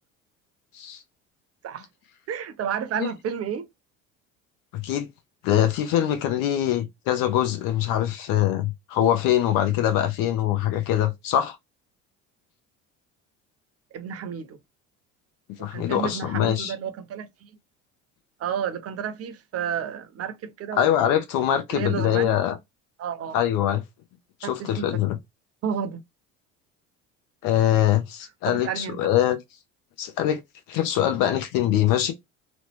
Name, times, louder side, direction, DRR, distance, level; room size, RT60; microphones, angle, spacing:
voice 1, 2.3-3.7 13.9-14.6 15.6-17.6 18.4-21.0 21.7-22.4 23.0-23.4 24.4-24.9 25.6-26.0 28.5-29.0, right 8 dB, 40° right, 0.7 m, -31 dB
voice 2, 4.7-5.1 5.4-11.6 15.6-16.7 20.8-22.6 23.3-23.8 24.4-25.2 27.4-29.4 30.0-30.4 30.7-32.1, left 11 dB, 60° left, 0.8 m, -23 dB
3.1 x 2.1 x 3.0 m
hypercardioid pair, 65°, 38 cm